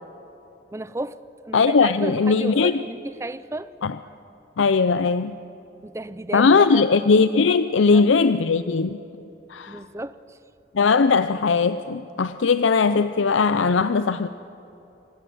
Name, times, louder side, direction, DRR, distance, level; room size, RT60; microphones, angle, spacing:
voice 1, 0.7-3.7 5.8-6.9 7.9-8.0 9.7-10.4, right 1 dB, 15° right, 15 dB, 0.5 m, -33 dB
voice 2, 1.5-2.8 3.8-4.0 4.6-5.4 6.3-9.0 9.5-9.8 10.7-14.3, left 4 dB, 85° left, 12 dB, 0.5 m, -19 dB
26.0 x 18.0 x 7.9 m, 2.8 s
head